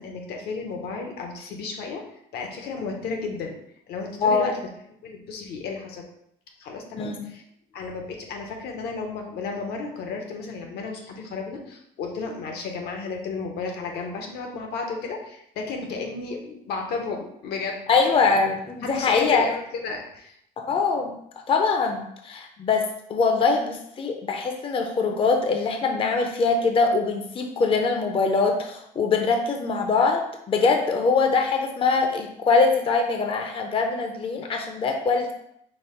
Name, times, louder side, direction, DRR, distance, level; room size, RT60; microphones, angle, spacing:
voice 1, 0.0-2.0 2.3-3.6 3.9-4.7 5.0-6.1 6.6-7.4 7.7-17.8 18.8-20.3, left 4 dB, 75° left, 2 dB, 0.9 m, -33 dB
voice 2, 17.9-19.4 20.6-21.1 21.5-35.3, left 4 dB, 30° left, 3 dB, 0.6 m, -23 dB
5.3 x 2.0 x 4.4 m, 0.74 s
cardioid pair, 110°, 17 cm